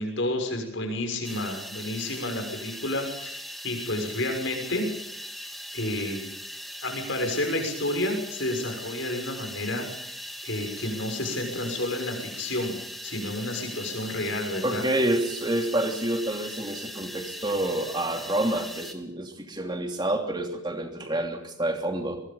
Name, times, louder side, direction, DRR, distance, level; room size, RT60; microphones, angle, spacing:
voice 1, 0.0-4.8 5.7-6.3 6.8-10.1 10.4-12.8 13.0-14.8, left 1 dB, 65° left, 4 dB, 6.5 m, -30 dB
sound 1, 1.2-18.9, equal, ahead, 1.8 m, -40 dB
voice 2, 14.6-22.2, right 1 dB, 20° right, 4 dB, 2.9 m, -28 dB
22.5 x 22.5 x 5.5 m, 0.79 s
head